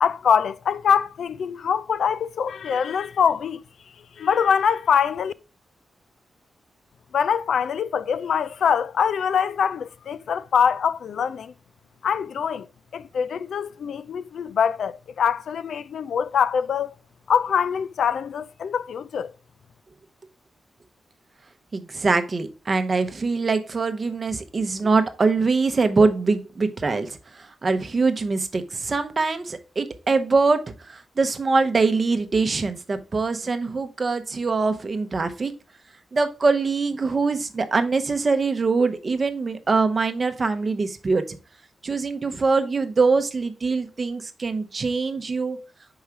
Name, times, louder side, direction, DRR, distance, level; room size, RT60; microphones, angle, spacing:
voice 1, 0.0-3.6 4.2-5.3 7.1-11.5 12.0-12.7 12.9-16.9 17.3-19.3, left 7 dB, 75° left, 0.3 m, -23 dB
voice 2, 21.7-35.5 36.1-41.4 41.8-45.6, right 4 dB, 35° right, 0.8 m, -23 dB
5.5 x 4.8 x 4.7 m
wide cardioid pair, 115°, 0 cm